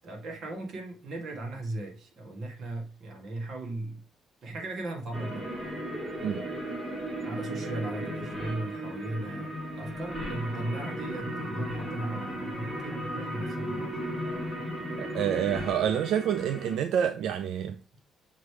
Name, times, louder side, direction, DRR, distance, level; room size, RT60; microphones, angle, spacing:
voice 1, 0.0-4.0 4.4-5.5 7.2-9.5 9.8-14.1 17.9-18.0, right 2 dB, 50° right, 1.7 m, -37 dB
sound 1, 5.1-16.8, equal, 15° right, 1.7 m, -35 dB
voice 2, 15.0-17.8, right 9 dB, 75° right, 0.4 m, -28 dB
6.6 x 3.4 x 4.6 m
cardioid pair, 150°, 0 cm